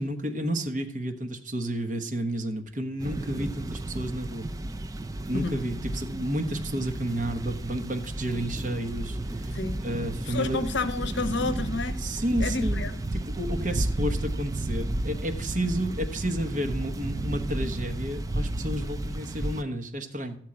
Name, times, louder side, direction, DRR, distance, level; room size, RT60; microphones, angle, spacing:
voice 1, 0.0-4.5 5.3-10.6 12.0-12.9 13.1-20.4, right 1 dB, 40° right, 1.0 m, -31 dB
sound 1, 3.0-19.6, right 1 dB, 15° right, 0.3 m, -32 dB
voice 2, 9.5-9.8 10.3-12.0 12.4-13.0, left 3 dB, 60° left, 0.8 m, -30 dB
13.0 x 4.6 x 8.6 m
head